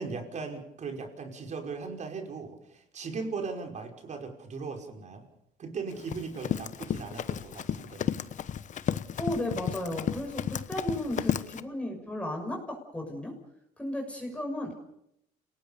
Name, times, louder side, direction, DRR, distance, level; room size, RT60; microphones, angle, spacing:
voice 1, 0.0-5.2 5.6-8.0, right 4 dB, 45° right, 4 dB, 5.6 m, -38 dB
Run, 5.9-11.6, left 9 dB, 45° left, 1.1 m, -33 dB
voice 2, 9.2-13.3 13.8-14.8, left 1 dB, 5° left, 2 dB, 6.5 m, -34 dB
28.5 x 19.0 x 6.9 m, 0.78 s
cardioid pair, 110°, 17 cm